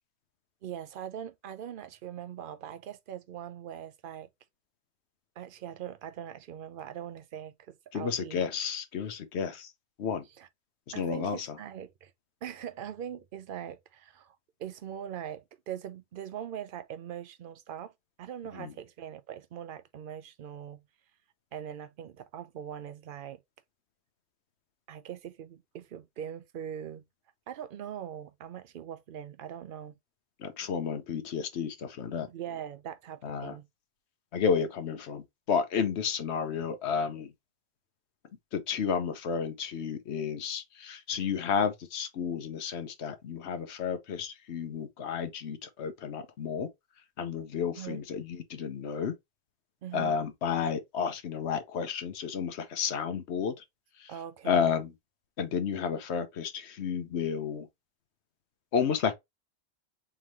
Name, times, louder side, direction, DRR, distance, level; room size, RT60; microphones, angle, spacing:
voice 1, 0.6-4.3 5.4-8.4 10.4-10.5 10.9-12.1 12.4-17.9 18.2-20.8 21.5-23.4 24.9-27.1 27.5-30.0 32.3-33.6 47.8-48.0 49.8-50.2 54.1-54.7, right 9 dB, 60° right, 0.7 m, -41 dB
voice 2, 7.9-9.7 10.0-10.3 10.9-11.6 18.6-18.7 30.4-32.3 33.2-33.6 34.3-37.3 38.5-46.7 47.2-49.1 49.9-53.6 54.0-54.1 54.4-54.9 55.4-57.7 58.7-59.1, left 6 dB, 85° left, 1.1 m, -31 dB
3.8 x 3.6 x 3.0 m
omnidirectional pair, 1.1 m